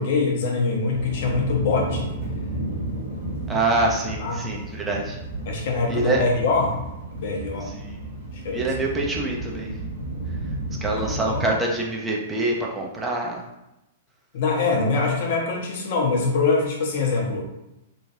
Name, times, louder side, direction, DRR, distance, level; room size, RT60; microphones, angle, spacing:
voice 1, 0.0-2.1 4.2-4.6 5.5-6.8 7.1-7.7 8.4-8.7 11.1-11.5 14.3-17.5, left 4 dB, 55° left, 1 dB, 0.6 m, -24 dB
sound 1, 0.9-11.4, right 2 dB, 70° right, 1.2 m, -32 dB
voice 2, 3.5-5.2 5.9-6.2 7.6-8.0 8.5-9.7 10.8-13.4, right 2 dB, 15° right, -2 dB, 0.5 m, -25 dB
3.0 x 2.1 x 3.0 m, 0.91 s
figure-of-eight pair, 105°, 0 cm